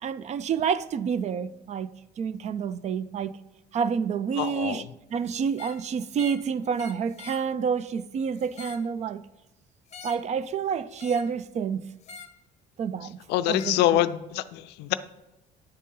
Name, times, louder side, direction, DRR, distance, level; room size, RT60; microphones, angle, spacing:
voice 1, 0.0-1.9 2.2-3.4 3.7-4.8 5.1-9.2 10.0-11.9 12.8-13.2 13.5-14.0, right 6 dB, 40° right, 0.4 m, -28 dB
voice 2, 4.4-4.9 13.3-14.9, left 13 dB, 85° left, 0.4 m, -25 dB
sound 1, 5.5-5.8 6.1-6.5 6.8-7.5 8.4-8.9 9.9-10.3 11.0-11.4 12.0-12.4 13.6-13.8, left 5 dB, 40° left, 0.6 m, -45 dB
9.9 x 4.1 x 3.7 m
cardioid pair, 110°, 17 cm